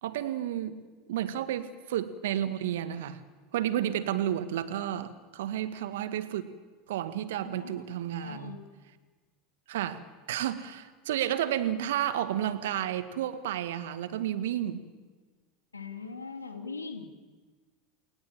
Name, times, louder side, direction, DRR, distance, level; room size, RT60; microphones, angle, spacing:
voice 1, 0.0-0.8 1.1-3.2 3.5-6.5 6.9-8.6 9.7-14.9, right 11 dB, 65° right, 11 dB, 1.8 m, -31 dB
voice 2, 7.4-7.9 8.2-8.6 15.7-17.1, left 4 dB, 85° left, 4 dB, 3.0 m, -41 dB
29.5 x 20.5 x 7.6 m, 1.4 s
figure-of-eight pair, 80°, 0 cm